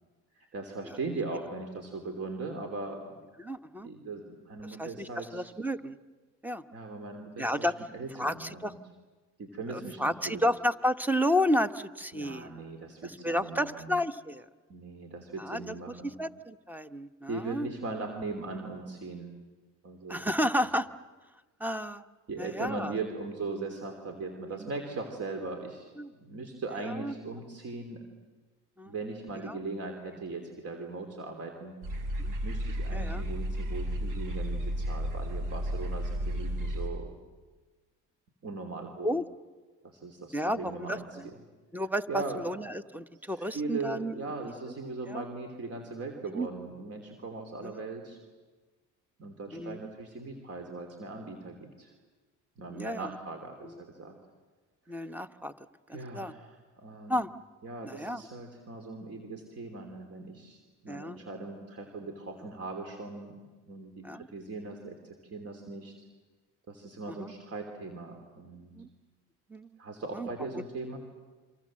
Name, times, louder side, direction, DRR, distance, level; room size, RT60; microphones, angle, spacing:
voice 1, 0.3-3.1 3.8-5.5 6.7-7.6 7.9-8.8 9.4-10.4 12.1-13.9 14.7-16.2 17.3-19.3 19.8-20.3 22.3-28.0 28.8-31.7 32.4-37.2 38.4-39.1 39.8-41.1 42.1-42.4 43.2-48.2 49.2-51.9 52.6-54.1 54.8-55.2 55.9-57.2 57.6-63.4 63.7-65.9 66.7-68.7 69.8-71.0, right 3 dB, 45° right, 4 dB, 3.2 m, -39 dB
voice 2, 3.4-3.9 4.8-6.0 6.4-6.6 7.4-7.7 8.2-8.7 9.7-12.6 13.0-14.4 15.4-15.9 16.2-17.7 20.1-20.9 21.6-22.0 22.4-22.9 24.6-24.7 26.0-26.1 26.8-27.1 28.8-28.9 29.5-29.6 32.2-32.3 32.9-33.2 39.0-39.2 40.3-41.3 41.7-44.2 45.1-45.2 46.3-46.5 47.6-47.8 49.5-49.8 52.7-53.1 54.9-55.5 55.9-56.3 57.1-57.3 57.8-58.2 60.9-61.2 64.0-64.3 67.2-67.3 68.7-68.9 69.5-69.8 70.1-70.3, equal, 5° right, 11 dB, 1.0 m, -32 dB
sound 1, 31.8-36.9, equal, 75° right, 5.4 m, -33 dB
28.5 x 25.0 x 7.6 m, 1.3 s
cardioid pair, 100°, 32 cm